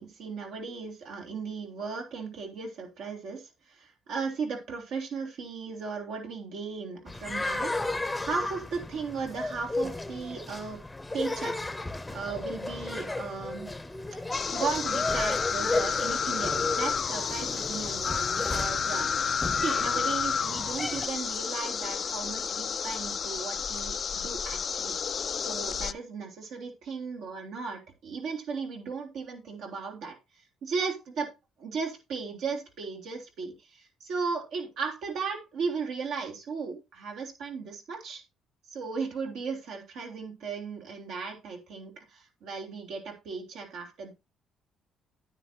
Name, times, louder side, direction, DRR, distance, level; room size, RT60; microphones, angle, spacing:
voice 1, 0.0-7.8 8.2-10.8 11.1-11.6 12.1-13.7 14.5-31.3 31.6-38.2 38.7-44.1, right 5 dB, 75° right, 2 dB, 3.0 m, -36 dB
sound 1, 7.1-21.1, left 2 dB, 15° left, 0.8 m, -34 dB
sound 2, 14.3-25.9, left 7 dB, 45° left, 0.4 m, -30 dB
9.7 x 9.5 x 2.8 m, 0.24 s
cardioid pair, 90°, 0 cm